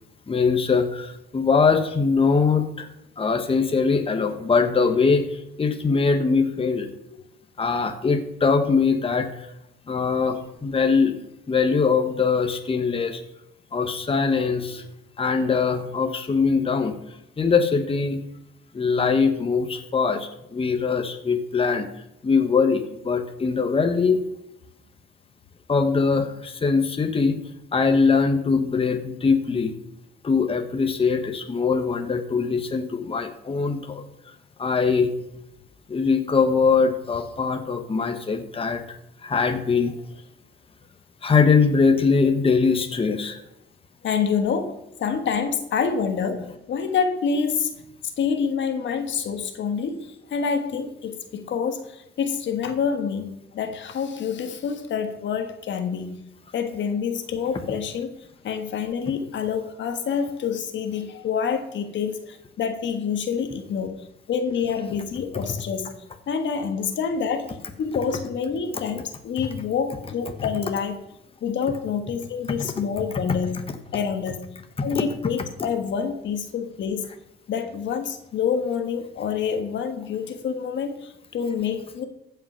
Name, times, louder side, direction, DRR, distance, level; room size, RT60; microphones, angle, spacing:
voice 1, 0.3-2.9 3.2-6.9 7.6-9.5 9.9-11.2 11.5-13.2 13.7-14.8 15.2-17.0 17.4-18.2 18.7-21.9 22.2-24.2 25.7-27.4 27.7-29.7 30.2-34.0 34.6-35.1 35.9-39.0 39.2-39.9 41.2-43.4 72.6-72.7 74.9-75.0, left 5 dB, 30° left, 6 dB, 1.2 m, -22 dB
voice 2, 14.5-14.8 39.7-39.8 44.0-47.7 48.0-56.1 56.5-58.1 58.4-65.9 66.3-71.0 71.4-73.6 73.9-74.4 74.8-77.1 77.5-82.0, left 6 dB, 70° left, 6 dB, 1.5 m, -27 dB
15.0 x 5.8 x 5.7 m, 0.82 s
cardioid pair, 90°, 20 cm